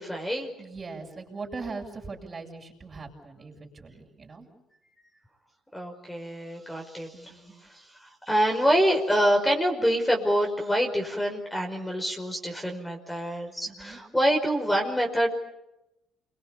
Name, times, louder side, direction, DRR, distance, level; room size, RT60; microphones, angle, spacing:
voice 1, 0.0-0.5 5.7-7.4 7.6-15.3, equal, 10° left, 2 dB, 5.2 m, -26 dB
voice 2, 0.6-4.5 7.1-7.5 13.7-14.0, right 4 dB, 30° right, 2 dB, 7.7 m, -40 dB
29.0 x 23.5 x 7.2 m, 0.91 s
cardioid pair, 90°, 0 cm